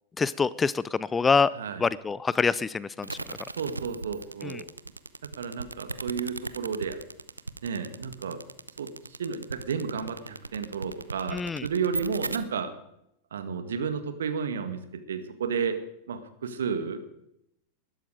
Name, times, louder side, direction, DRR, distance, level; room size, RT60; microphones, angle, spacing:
voice 1, 0.2-1.5 1.8-3.1 4.4-4.6 11.3-11.7, left 5 dB, 15° left, 20 dB, 0.5 m, -25 dB
sound 1, 3.0-12.4, right 3 dB, 80° right, 0.8 m, -36 dB
voice 2, 3.6-4.6 5.4-7.0 7.6-8.4 8.8-12.7 13.3-14.8 15.1-15.8 16.1-17.0, right 6 dB, 65° right, 9 dB, 1.9 m, -32 dB
20.5 x 12.0 x 5.0 m, 0.79 s
figure-of-eight pair, 90°, 0 cm